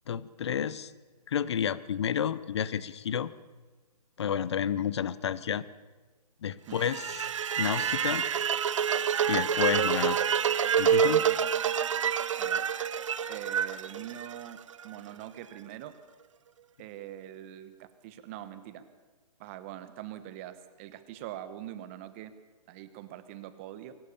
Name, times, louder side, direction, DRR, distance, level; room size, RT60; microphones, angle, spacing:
voice 1, 0.1-0.9 1.3-3.3 4.2-5.6 6.4-7.2 7.6-8.2 9.3-10.2 10.8-11.2, left 8 dB, 40° left, 18 dB, 0.8 m, -30 dB
sound 1, 6.7-14.8, right 8 dB, 50° right, 0.8 m, -27 dB
voice 2, 13.3-14.6 14.8-15.9 16.8-18.8 19.4-22.3 22.7-23.9, right 12 dB, 20° right, 12 dB, 1.0 m, -43 dB
21.5 x 18.5 x 7.1 m, 1.3 s
hypercardioid pair, 165°, 21 cm